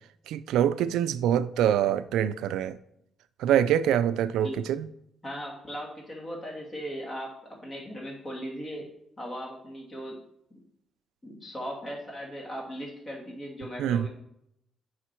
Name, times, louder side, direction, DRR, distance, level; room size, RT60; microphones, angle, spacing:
voice 1, 0.3-2.8 3.4-4.9 13.8-14.1, right 10 dB, 85° right, 0.3 m, -25 dB
voice 2, 5.2-8.9 9.2-10.2 11.2-14.1, equal, 30° left, 2.5 m, -38 dB
8.2 x 5.1 x 4.5 m
cardioid pair, 90°, 0 cm